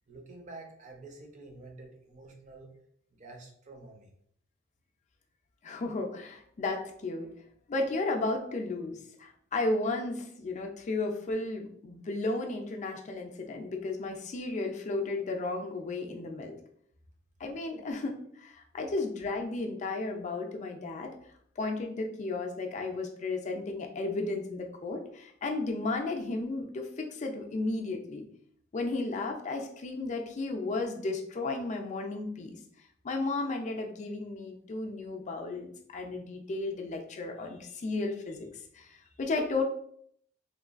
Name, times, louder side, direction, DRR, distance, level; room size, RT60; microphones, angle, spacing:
voice 1, 0.1-2.7 3.1-4.1, right 2 dB, 35° right, 1 dB, 0.5 m, -48 dB
voice 2, 5.6-7.3 7.7-16.6 17.4-21.1 21.6-28.3 28.7-32.6 33.0-39.6, left 2 dB, 35° left, 3 dB, 0.3 m, -34 dB
3.1 x 2.2 x 2.4 m, 0.66 s
head